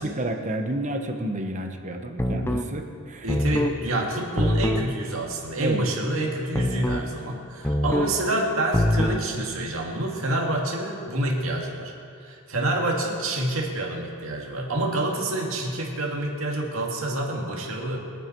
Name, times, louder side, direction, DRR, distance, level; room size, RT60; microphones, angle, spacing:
voice 1, 0.0-3.3 5.5-5.9, right 1 dB, 35° right, 4 dB, 1.1 m, -30 dB
sound 1, 2.2-2.7 3.3-3.8 4.4-4.9 6.5-7.1 7.6-8.2 8.7-9.2, left 1 dB, 10° left, 0.6 m, -23 dB
voice 2, 3.2-11.9 12.2-18.0, right 1 dB, 65° right, -1 dB, 2.2 m, -27 dB
23.0 x 9.1 x 4.6 m, 2.4 s
head